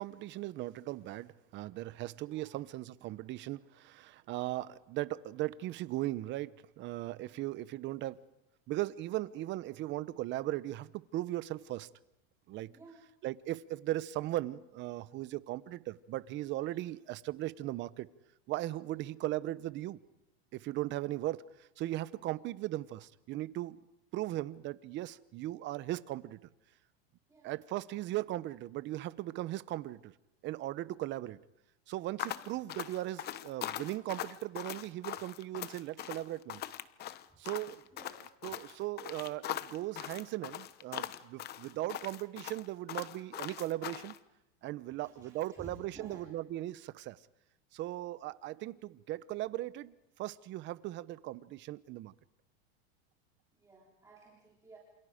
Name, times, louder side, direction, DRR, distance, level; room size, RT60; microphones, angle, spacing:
voice 1, 0.0-8.2 8.7-11.9 12.5-12.7 13.2-18.1 18.5-20.0 20.5-23.8 24.1-26.4 27.4-30.1 30.4-31.4 31.9-36.6 37.4-37.8 38.4-44.1 44.6-47.2 47.7-52.1, right 15 dB, 35° right, 0.9 m, -38 dB
voice 2, 12.7-13.1 18.9-19.0 27.3-27.5 32.3-32.5 37.3-37.4 37.9-38.1 45.0-46.3 53.5-54.8, right 3 dB, 10° right, 3.6 m, -55 dB
sound 1, 32.2-44.2, left 12 dB, 30° left, 0.9 m, -41 dB
28.0 x 27.5 x 5.1 m
supercardioid pair, 140°, 32 cm